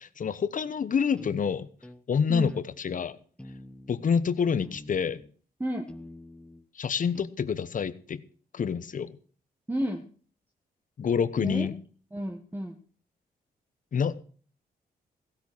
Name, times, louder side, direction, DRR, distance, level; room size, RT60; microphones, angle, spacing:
voice 1, 0.0-1.7 2.1-3.2 3.9-5.2 6.7-8.2 8.5-9.2 11.0-11.8 13.9-14.2, left 6 dB, 55° left, 16 dB, 1.0 m, -27 dB
sound 1, 1.2-1.4 1.8-2.0 2.5-2.7 3.4-4.0 4.6-5.3 5.9-6.6 7.1-7.3, left 1 dB, 5° left, 1.0 m, -47 dB
voice 2, 9.7-10.0 11.4-11.7 12.1-12.8, right 1 dB, 10° right, 4 dB, 1.5 m, -31 dB
15.5 x 8.6 x 6.3 m, 0.44 s
cardioid pair, 75°, 16 cm